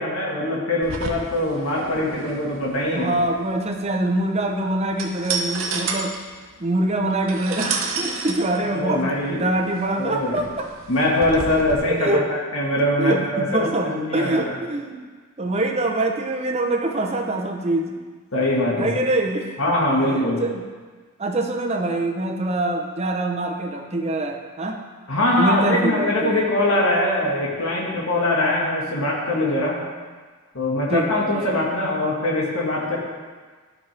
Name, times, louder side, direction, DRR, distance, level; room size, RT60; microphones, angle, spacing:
voice 1, 0.0-3.1 8.6-9.5 10.0-10.4 10.9-14.6 18.3-19.0 19.6-20.4 25.1-29.8 30.5-33.0, left 1 dB, 70° left, -4 dB, 1.9 m, -22 dB
sound 1, 0.8-11.7, right 4 dB, 65° right, 0.9 m, -32 dB
voice 2, 2.9-6.1 6.6-10.7 11.9-12.3 13.0-15.0 15.4-17.9 18.8-19.6 20.4-20.6 21.2-24.8 25.4-26.5 30.9-31.6, right 2 dB, 30° right, 2 dB, 0.8 m, -24 dB
12.5 x 5.4 x 3.4 m, 1.5 s
head